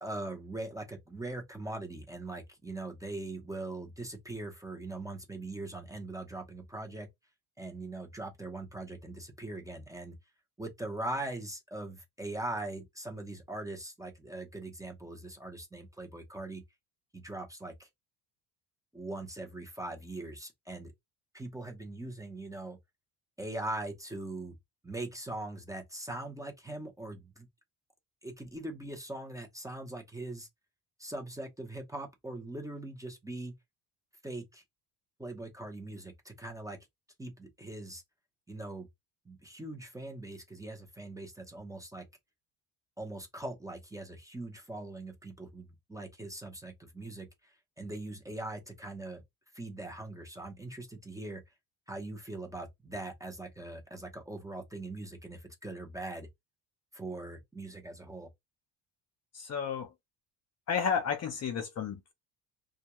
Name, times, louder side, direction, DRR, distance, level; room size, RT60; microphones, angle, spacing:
voice 1, 0.0-7.1 7.6-10.2 10.6-16.6 17.1-17.9 18.9-20.9 21.3-22.8 23.4-24.6 24.8-27.5 28.2-30.5 31.0-33.5 34.2-34.6 35.2-36.8 37.2-38.0 38.5-38.9 39.3-42.1 43.0-49.2 49.5-51.4 51.9-56.3 56.9-58.3, right 2 dB, 10° right, 0.6 m, -41 dB
voice 2, 59.3-59.9 60.7-62.1, left 7 dB, 35° left, 0.6 m, -32 dB
2.3 x 2.1 x 2.9 m
cardioid pair, 110°, 43 cm